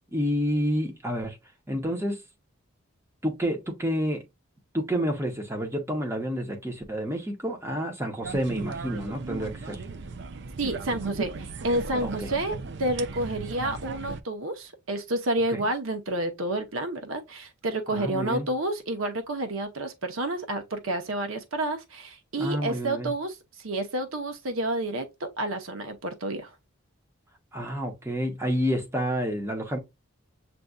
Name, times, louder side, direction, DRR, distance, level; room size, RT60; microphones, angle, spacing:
voice 1, 0.1-1.4 1.7-2.2 3.2-4.2 4.7-9.8 12.0-12.3 15.5-15.7 17.9-18.5 22.4-23.1 27.5-29.8, equal, 10° right, 1.0 m, -29 dB
sound 1, 8.2-14.2, right 4 dB, 55° right, 0.4 m, -36 dB
voice 2, 10.6-26.5, right 1 dB, 70° right, 0.8 m, -30 dB
7.5 x 2.6 x 2.2 m
head